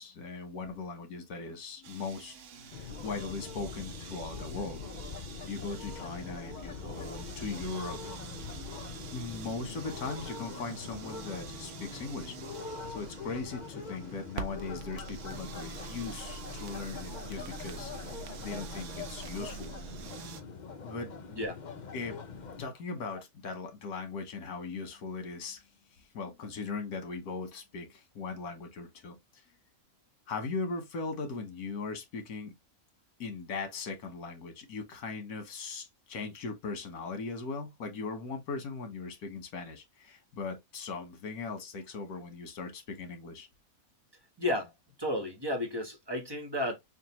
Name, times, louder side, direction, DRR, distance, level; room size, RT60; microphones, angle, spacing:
voice 1, 0.0-4.8 5.0-5.1 5.4-8.1 9.1-12.3 12.9-19.7 20.8-21.1 21.9-22.2 22.6-25.6 26.1-29.2 30.3-32.5 33.2-43.5, left 4 dB, 80° left, 1.6 m, -39 dB
sound 1, 1.8-20.4, right 7 dB, 60° right, 0.9 m, -48 dB
sound 2, 2.7-22.7, left 5 dB, 55° left, 0.5 m, -43 dB
Crackle, 14.3-20.1, right 4 dB, 80° right, 1.2 m, -44 dB
voice 2, 44.4-44.7 45.0-46.8, left 1 dB, 20° right, 1.0 m, -32 dB
5.9 x 2.4 x 3.0 m
omnidirectional pair, 1.6 m